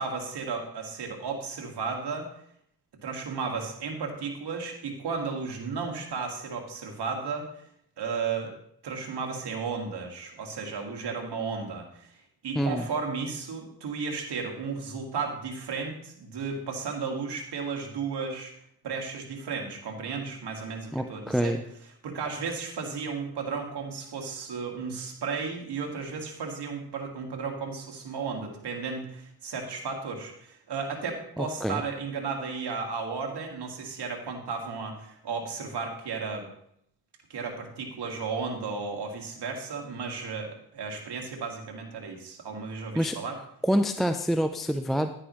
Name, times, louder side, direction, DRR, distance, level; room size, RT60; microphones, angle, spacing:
voice 1, 0.0-2.3 3.0-7.5 8.0-8.5 8.8-12.2 12.4-18.5 18.8-21.5 22.0-36.5 37.3-43.4, right 5 dB, 80° right, 2 dB, 1.9 m, -34 dB
voice 2, 20.9-21.6 31.4-31.8 43.0-43.2 43.6-45.1, equal, ahead, 8 dB, 0.4 m, -26 dB
10.5 x 9.9 x 3.1 m, 0.71 s
cardioid pair, 80°, 40 cm